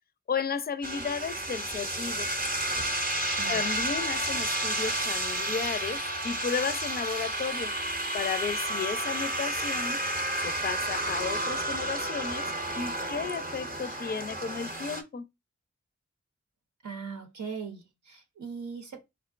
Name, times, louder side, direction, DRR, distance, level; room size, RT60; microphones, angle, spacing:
voice 1, 0.3-2.3 3.5-7.7 8.1-10.0 10.4-15.3, left 6 dB, 35° left, 0.4 m, -34 dB
sound 1, 0.8-15.0, right 1 dB, 30° right, 0.6 m, -31 dB
voice 2, 16.8-19.0, right 5 dB, 75° right, 0.7 m, -39 dB
3.5 x 2.1 x 2.4 m
cardioid pair, 40°, 29 cm